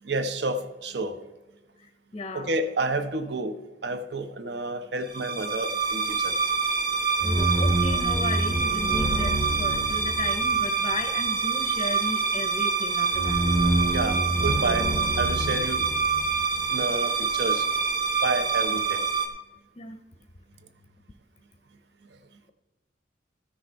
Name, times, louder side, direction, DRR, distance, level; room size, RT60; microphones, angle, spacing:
voice 1, 0.0-1.2 2.3-3.6 3.8-6.4 13.9-15.9 16.7-17.7 18.2-19.1 22.1-22.2, right 2 dB, 65° right, 10 dB, 0.8 m, -30 dB
voice 2, 1.8-2.5 7.2-13.7 19.8-20.0, left 2 dB, 25° left, 8 dB, 0.6 m, -36 dB
sound 1, 5.1-19.3, right 4 dB, 25° right, 0.9 m, -25 dB
14.0 x 6.5 x 4.5 m, 1.1 s
head